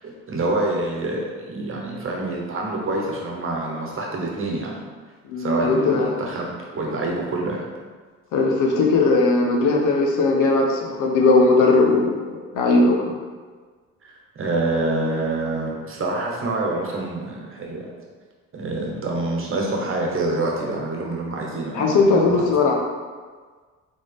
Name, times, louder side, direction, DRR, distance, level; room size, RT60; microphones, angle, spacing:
voice 1, 0.0-4.7 5.4-7.6 14.0-17.9 18.5-22.6, right 2 dB, 45° right, -1 dB, 1.1 m, -26 dB
voice 2, 5.3-6.1 8.3-13.1 21.7-22.8, left 3 dB, 90° left, 0 dB, 0.9 m, -18 dB
3.9 x 3.7 x 3.5 m, 1.5 s
cardioid pair, 90°, 30 cm